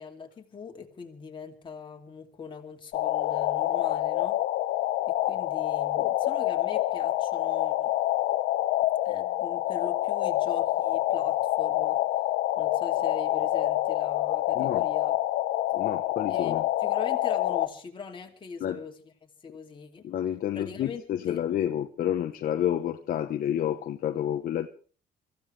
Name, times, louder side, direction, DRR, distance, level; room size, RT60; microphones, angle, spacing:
voice 1, 0.0-4.4 5.1-7.9 9.0-12.0 12.6-15.1 16.3-18.9 19.2-20.1 20.5-21.0 21.3-21.4, left 5 dB, 30° left, 2 dB, 2.7 m, -41 dB
sound 1, 2.9-17.7, left 14 dB, 80° left, 1.0 m, -27 dB
voice 2, 14.5-14.9 15.7-16.7 18.6-18.8 20.0-24.7, left 10 dB, 55° left, 7 dB, 1.0 m, -29 dB
24.5 x 15.5 x 3.4 m, 0.41 s
cardioid pair, 110°, 17 cm